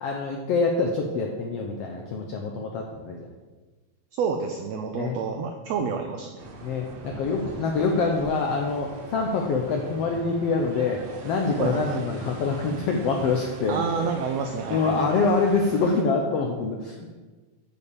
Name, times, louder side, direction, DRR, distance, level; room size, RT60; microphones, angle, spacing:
voice 1, 0.0-3.3 4.9-5.2 6.6-13.8 14.7-17.1, left 4 dB, 85° left, 1 dB, 1.4 m, -25 dB
voice 2, 4.2-6.4 11.6-12.0 13.7-15.3, right 5 dB, 90° right, 5 dB, 1.4 m, -29 dB
sound 1, 6.4-16.0, right 2 dB, 65° right, 2.0 m, -42 dB
8.3 x 4.6 x 6.9 m, 1.3 s
omnidirectional pair, 3.7 m